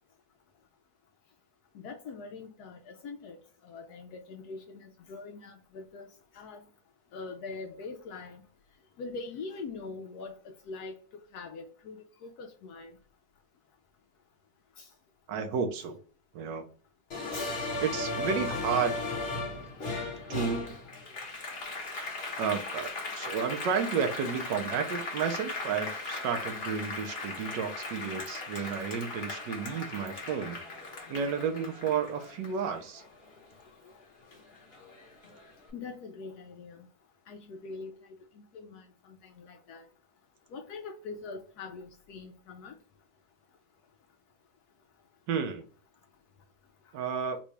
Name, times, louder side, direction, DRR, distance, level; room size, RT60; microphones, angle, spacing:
voice 1, 1.7-3.4 3.6-6.1 6.3-6.6 7.1-8.4 9.0-11.0 11.3-12.9 14.8-14.9 35.7-36.9 37.3-38.0 38.5-39.9 40.5-42.7, left 4 dB, 70° left, 0.9 m, -43 dB
voice 2, 15.3-16.0 16.3-16.7 17.8-19.0 20.3-20.6 22.4-30.6 31.1-33.0 45.3-45.7 46.9-47.4, right 6 dB, 75° right, 1.3 m, -32 dB
Applause, 17.1-33.9 34.3-35.5, left 3 dB, 40° left, 1.0 m, -37 dB
4.0 x 2.3 x 3.0 m
omnidirectional pair, 2.0 m